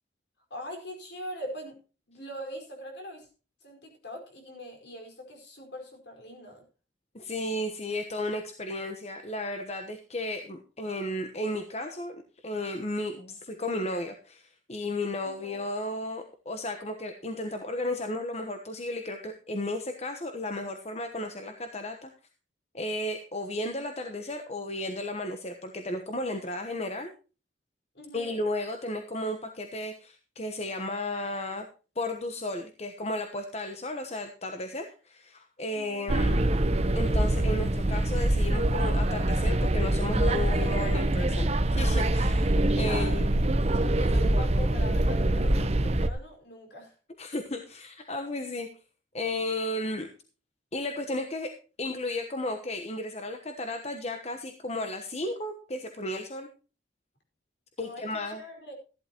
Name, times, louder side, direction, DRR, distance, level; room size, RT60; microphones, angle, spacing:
voice 1, 0.5-1.8 2.1-3.3 3.6-6.6 15.2-15.6 27.9-28.4 35.7-36.1 42.9-43.4 43.8-46.9 57.8-58.7, left 1 dB, 65° left, 2 dB, 4.9 m, -42 dB
voice 2, 7.1-12.2 12.4-22.1 22.7-27.1 28.1-31.7 31.9-36.4 36.9-43.3 43.7-43.8 47.2-48.7 49.1-50.1 50.7-56.5 57.8-58.4, left 1 dB, 35° left, 5 dB, 1.1 m, -34 dB
sound 1, 36.1-46.1, right 1 dB, 35° right, 0.8 m, -24 dB
14.0 x 12.0 x 3.0 m, 0.35 s
head